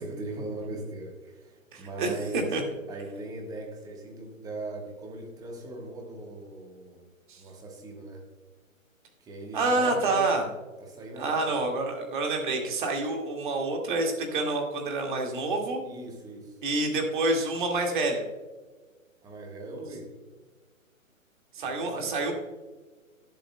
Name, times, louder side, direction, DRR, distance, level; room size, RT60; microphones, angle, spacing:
voice 1, 0.0-2.6 2.9-7.1 7.4-8.2 9.2-10.3 10.8-11.6 15.8-16.6 19.2-20.1 21.6-22.2, right 2 dB, 10° right, 1 dB, 1.3 m, -39 dB
voice 2, 1.7-2.6 7.3-7.4 9.5-10.5 11.2-15.8 16.6-18.2 21.5-22.3, right 2 dB, 35° right, 2 dB, 2.0 m, -28 dB
19.5 x 7.6 x 2.2 m, 1.3 s
figure-of-eight pair, 130°, 41 cm